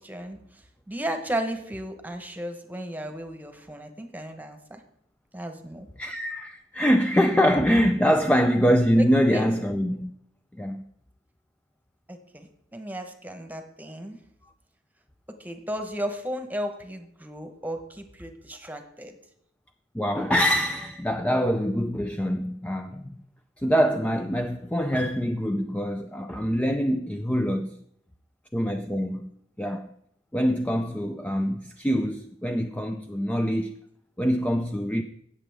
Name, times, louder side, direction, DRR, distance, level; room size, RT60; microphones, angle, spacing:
voice 1, 0.0-4.8 5.3-5.9 9.3-9.5 12.1-14.2 15.4-19.1, right 1 dB, 10° right, 1.1 m, -35 dB
voice 2, 6.0-10.1 10.5-10.9 19.9-23.2 23.6-27.8 28.5-29.3 29.6-29.9 30.3-33.7 34.2-35.0, equal, 10° left, 0.4 m, -24 dB
17.0 x 7.1 x 3.5 m
head